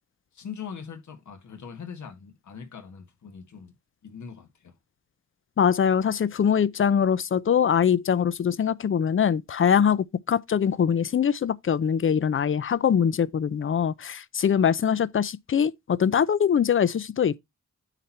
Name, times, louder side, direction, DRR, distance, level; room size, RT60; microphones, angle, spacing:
voice 1, 0.3-3.7 4.0-4.7, left 6 dB, 70° left, 1.7 m, -41 dB
voice 2, 5.6-17.4, left 8 dB, 45° left, 0.6 m, -23 dB
9.1 x 4.3 x 4.3 m
cardioid pair, 65°, 30 cm